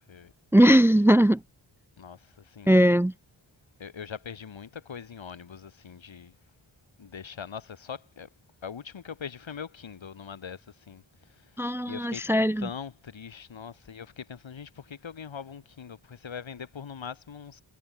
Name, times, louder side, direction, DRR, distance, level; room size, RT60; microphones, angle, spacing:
voice 1, 0.5-1.4 2.7-3.1 11.6-12.7, equal, 5° right, 0.4 m, -19 dB
voice 2, 2.5-2.8 3.8-6.3 7.0-8.3 8.6-10.6 10.9-11.0 11.9-12.2 12.6-17.6, left 7 dB, 90° left, 4.4 m, -41 dB
cardioid pair, 65°, 45 cm